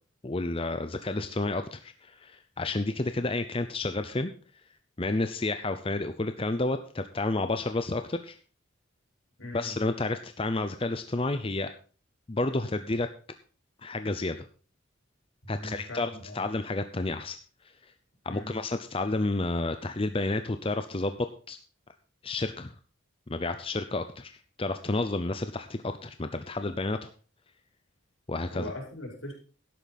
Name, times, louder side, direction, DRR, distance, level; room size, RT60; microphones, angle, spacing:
voice 1, 0.2-4.3 5.0-8.4 9.5-11.7 12.3-13.1 13.8-14.5 15.5-17.4 18.2-21.6 22.2-22.7 23.3-27.1 28.3-28.7, left 2 dB, 25° left, 9 dB, 0.6 m, -30 dB
voice 2, 9.4-9.7 15.4-16.4 18.3-18.6 28.5-29.3, left 1 dB, 80° left, 0 dB, 4.8 m, -40 dB
12.5 x 10.5 x 4.2 m, 0.38 s
head